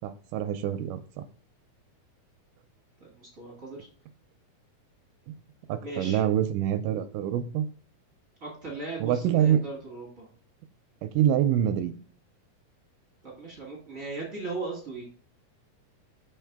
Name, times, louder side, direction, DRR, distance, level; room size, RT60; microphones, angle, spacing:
voice 1, 0.0-1.2 5.3-5.4 5.7-7.7 9.0-9.6 11.0-11.9, right 10 dB, 80° right, 10 dB, 2.0 m, -26 dB
voice 2, 3.0-3.9 5.8-6.2 8.4-10.3 13.2-15.0, right 3 dB, 40° right, -3 dB, 1.2 m, -38 dB
5.9 x 4.6 x 3.4 m, 0.43 s
omnidirectional pair, 4.0 m